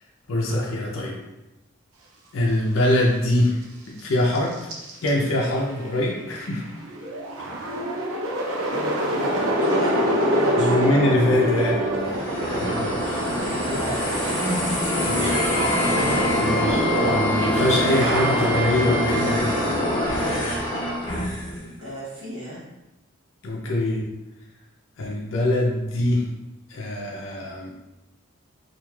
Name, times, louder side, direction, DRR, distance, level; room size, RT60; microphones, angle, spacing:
voice 1, 0.3-1.2 2.3-3.6 3.9-4.6 5.0-6.6 7.4-7.5 10.6-11.8 12.6-13.2 15.1-15.3 16.3-19.5 23.4-24.1 25.0-26.3 26.7-27.7, left 1 dB, 70° left, -2 dB, 0.5 m, -23 dB
sound 1, 4.0-4.1 4.3-5.1 5.6-5.7 5.8-19.1, right 1 dB, 90° right, 0.5 m, -26 dB
voice 2, 8.7-9.3 9.6-10.9 13.5-14.2 15.1-15.8 21.5-22.6, equal, 65° right, -10 dB, 0.9 m, -35 dB
sound 2, 11.9-21.6, equal, 25° left, 0.6 m, -25 dB
Wind instrument woodwind instrument, 15.2-19.3, left 2 dB, 20° right, 0.7 m, -31 dB
3.1 x 2.4 x 2.3 m, 0.99 s
head